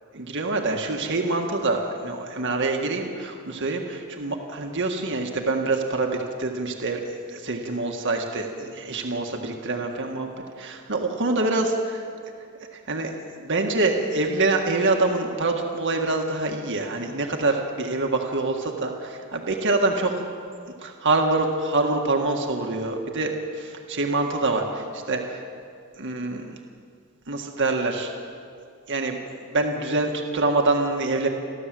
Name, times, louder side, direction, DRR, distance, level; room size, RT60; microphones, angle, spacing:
voice 1, 0.1-7.0 7.3-10.3 10.6-11.7 12.9-13.1 13.4-20.1 20.8-25.4 26.0-26.6 27.3-28.1 28.9-29.2 29.5-31.3, right 2 dB, 55° right, 2 dB, 1.7 m, -25 dB
30.0 x 12.0 x 7.7 m, 2.3 s
head